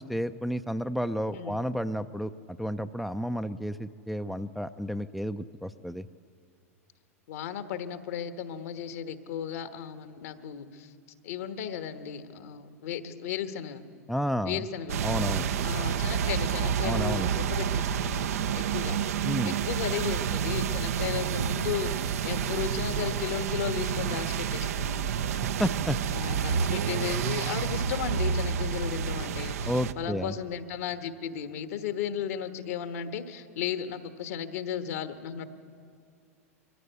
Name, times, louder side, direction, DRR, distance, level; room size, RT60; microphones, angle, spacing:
voice 1, 0.0-6.1 14.1-14.6 15.0-15.5 16.8-17.3 19.2-19.6 25.4-26.0 29.7-30.3, equal, ahead, 9 dB, 0.5 m, -31 dB
voice 2, 7.3-10.9 11.2-13.8 14.4-15.0 15.6-19.0 19.5-25.1 26.1-35.4, left 8 dB, 65° left, 10 dB, 1.3 m, -35 dB
sound 1, 14.9-29.9, right 7 dB, 70° right, 0.7 m, -29 dB
23.0 x 15.0 x 8.1 m, 2.4 s
hypercardioid pair, 95°, 8 cm